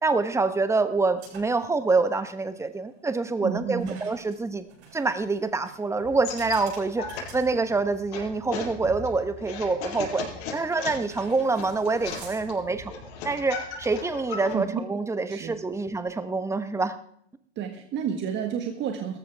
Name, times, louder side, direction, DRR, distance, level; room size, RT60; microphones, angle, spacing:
voice 1, 0.0-4.7 4.9-10.2 10.5-17.0, right 3 dB, 10° right, 10 dB, 1.0 m, -26 dB
sound 1, 1.2-1.7 2.0-2.2 3.8-8.2 8.7-8.8 10.0-10.4 11.0-12.8, right 6 dB, 65° right, 7.9 m, -49 dB
voice 2, 3.4-4.0 14.5-14.8 15.3-15.8 17.6-19.2, right 8 dB, 30° right, 4 dB, 1.5 m, -31 dB
sound 2, 6.0-14.6, left 5 dB, 60° left, 5.5 m, -37 dB
18.0 x 14.0 x 3.5 m, 0.67 s
hypercardioid pair, 115°, 35 cm